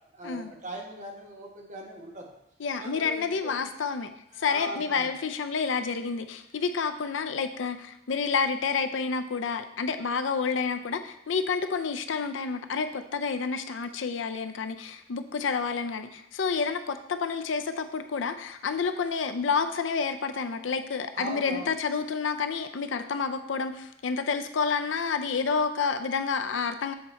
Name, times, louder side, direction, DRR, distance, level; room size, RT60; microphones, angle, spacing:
voice 1, 0.1-2.3 2.8-3.6 4.3-5.1 21.1-21.7, right 1 dB, 40° right, 0 dB, 1.3 m, -39 dB
voice 2, 2.6-4.1 4.4-26.9, left 5 dB, 70° left, 9 dB, 0.5 m, -29 dB
7.6 x 4.0 x 4.3 m, 0.80 s
head